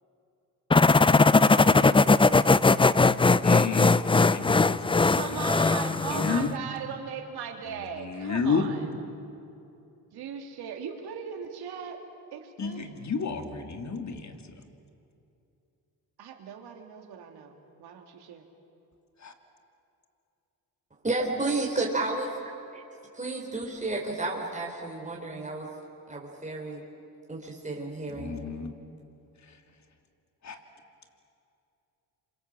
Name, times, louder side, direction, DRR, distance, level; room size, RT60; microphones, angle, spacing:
sound 1, 0.7-6.5, left 3 dB, 15° left, 0.5 m, -20 dB
voice 1, 3.2-5.5 5.9-6.6 7.7-8.7 12.6-14.6 19.2-19.3 28.1-28.8 29.4-29.6 30.4-30.6, left 5 dB, 45° left, 5 dB, 2.8 m, -32 dB
voice 2, 5.1-8.8 10.0-12.0 12.3-13.0 16.2-18.5, right 7 dB, 80° right, 3 dB, 3.0 m, -39 dB
voice 3, 21.0-22.3 23.1-25.7 26.1-26.8 27.3-28.4, right 2 dB, 20° right, -2 dB, 4.0 m, -31 dB
28.0 x 25.0 x 7.7 m, 2.7 s
cardioid pair, 75°, 38 cm